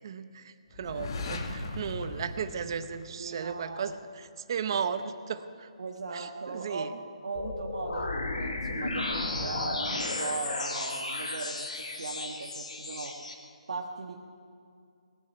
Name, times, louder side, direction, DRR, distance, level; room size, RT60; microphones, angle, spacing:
voice 1, 0.0-5.7 6.1-6.9, right 7 dB, 40° right, 11 dB, 0.7 m, -35 dB
sound 1, 0.7-3.6, left 2 dB, 45° left, 1.7 m, -38 dB
voice 2, 3.2-3.8 5.8-11.7 11.9-13.1 13.7-14.2, right 3 dB, 75° right, 1 dB, 1.3 m, -38 dB
sound 2, 7.3-13.3, left 2 dB, 85° left, 2.7 m, -34 dB
20.0 x 6.8 x 9.5 m, 2.4 s
hypercardioid pair, 170°, 4 cm